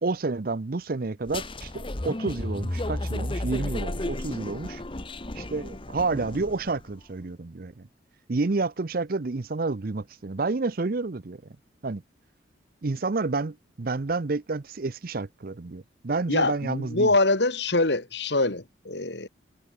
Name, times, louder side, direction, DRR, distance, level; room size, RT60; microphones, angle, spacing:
voice 1, 0.0-4.8 5.3-7.9 8.3-11.4 11.8-12.0 12.8-17.2, right 3 dB, 50° right, 0.6 m, -29 dB
sound 1, 1.3-6.8, left 1 dB, 30° left, 1.2 m, -33 dB
voice 2, 16.3-19.3, left 2 dB, 65° left, 2.5 m, -24 dB
head